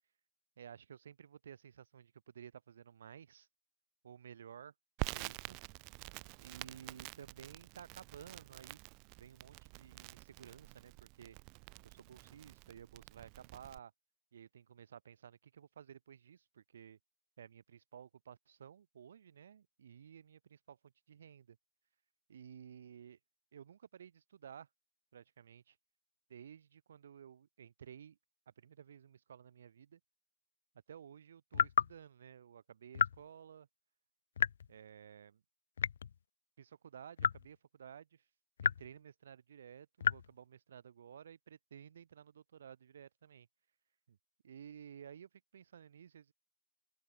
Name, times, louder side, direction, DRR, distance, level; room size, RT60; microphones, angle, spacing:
voice 1, 0.6-3.5 4.0-4.7 5.0-5.6 6.4-8.8 9.2-11.4 11.8-13.9 14.3-17.0 17.4-21.6 22.3-23.2 23.5-24.7 25.1-25.8 26.3-28.2 28.5-30.0 30.9-33.7 34.7-35.4 36.6-38.3 38.6-43.5 44.1-44.2 44.4-46.3, right 8 dB, 65° right, 5.6 m, -54 dB
Crackle, 5.0-13.8, right 34 dB, 25° right, 2.2 m, -48 dB
sound 1, 31.5-31.9 32.9-33.2 34.4-34.7 35.8-36.2 37.2-37.5 38.6-38.9 40.0-40.3, left 8 dB, 75° left, 0.4 m, -32 dB
open air
hypercardioid pair, 175°, 0 cm